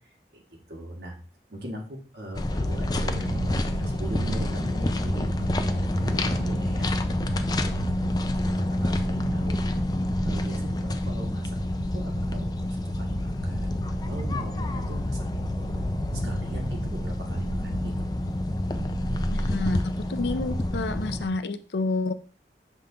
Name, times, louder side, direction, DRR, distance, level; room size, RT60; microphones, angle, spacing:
voice 1, 0.7-1.2 1.5-5.3 5.6-7.0 7.5-9.5 10.2-13.8 14.1-15.6 16.1-18.1, equal, 70° right, 0 dB, 1.6 m, -40 dB
sound 1, 2.4-21.3, left 1 dB, 20° left, 0.4 m, -28 dB
sound 2, 2.7-21.4, right 3 dB, 55° right, 0.4 m, -38 dB
voice 2, 19.3-19.8 20.1-22.1, left 3 dB, 75° left, 10 dB, 0.5 m, -29 dB
6.9 x 3.6 x 3.8 m, 0.40 s
head